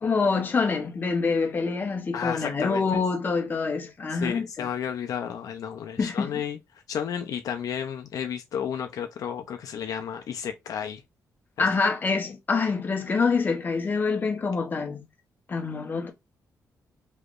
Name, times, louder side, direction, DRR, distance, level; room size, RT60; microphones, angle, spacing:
voice 1, 0.0-4.7 6.0-6.4 11.6-15.0 15.5-16.1, left 4 dB, 30° left, 0.8 m, -26 dB
voice 2, 2.1-2.9 4.1-6.6 6.9-11.0 11.6-11.7, left 8 dB, 70° left, 0.5 m, -32 dB
3.5 x 3.1 x 2.4 m
wide cardioid pair, 140°, 6 cm